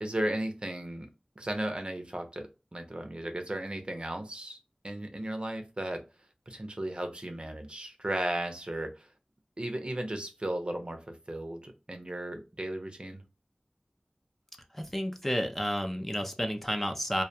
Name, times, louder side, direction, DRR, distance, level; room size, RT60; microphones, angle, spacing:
voice 1, 0.0-1.1 1.4-4.6 4.8-6.0 6.5-9.1 9.6-13.2, right 1 dB, 45° right, 5 dB, 0.6 m, -35 dB
voice 2, 14.7-17.2, equal, 10° left, 4 dB, 0.4 m, -31 dB
2.3 x 2.2 x 2.7 m, 0.28 s
wide cardioid pair, 40°, 2 cm